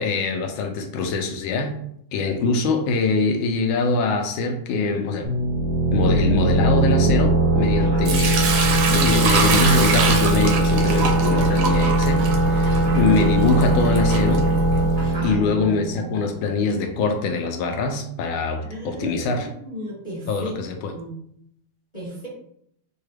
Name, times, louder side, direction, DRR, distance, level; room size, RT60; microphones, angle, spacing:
voice 1, 0.0-1.8 2.1-5.3 5.9-8.4 8.9-14.5 15.2-19.5 20.3-20.9, left 3 dB, 75° left, 4 dB, 1.3 m, -23 dB
sound 1, 5.2-16.7, right 2 dB, 50° right, 0.7 m, -20 dB
voice 2, 7.8-8.1 12.7-13.1 15.0-15.4 18.5-20.5 20.9-21.1 21.9-22.3, right 1 dB, 25° left, -7 dB, 1.0 m, -35 dB
Sink (filling or washing) / Liquid, 8.1-15.0, right 5 dB, 70° right, 0.9 m, -25 dB
4.7 x 2.3 x 3.2 m, 0.70 s
omnidirectional pair, 2.4 m